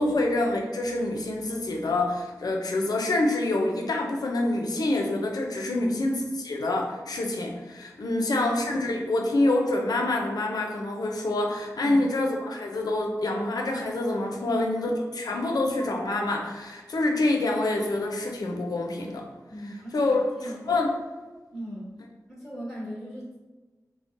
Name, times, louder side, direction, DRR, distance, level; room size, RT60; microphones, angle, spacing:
voice 1, 0.0-19.3 19.9-20.9, left 2 dB, 80° left, 1 dB, 0.4 m, -26 dB
voice 2, 5.6-6.0 8.0-8.2 11.8-12.0 14.3-14.6 19.5-20.6 21.5-21.9 22.3-23.4, right 1 dB, ahead, -9 dB, 1.1 m, -37 dB
3.6 x 2.0 x 2.5 m, 1.2 s
cardioid pair, 45°, 6 cm